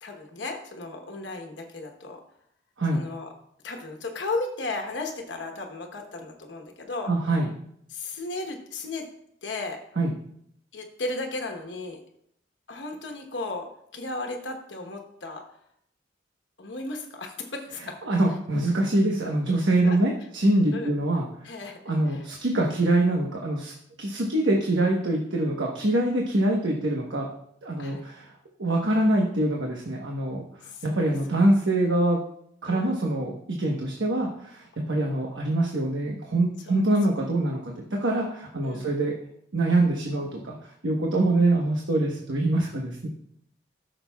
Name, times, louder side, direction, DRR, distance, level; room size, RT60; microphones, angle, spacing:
voice 1, 0.0-2.2 2.9-3.3 3.6-7.1 7.9-9.1 9.4-9.8 10.7-12.0 12.7-15.4 16.6-18.0 19.8-20.0 20.7-20.9 21.4-21.8 22.1-22.3 27.8-28.0 30.7-31.0 32.6-32.9 34.9-35.3 36.7-36.8 38.6-38.9, left 2 dB, 80° left, 3 dB, 1.1 m, -35 dB
voice 2, 7.1-7.5 10.0-10.1 18.0-21.3 21.8-23.7 24.0-27.3 27.6-28.3 28.6-32.2 32.6-39.1 39.5-43.1, right 1 dB, 90° right, -1 dB, 1.1 m, -24 dB
13.5 x 6.5 x 2.3 m, 0.71 s
head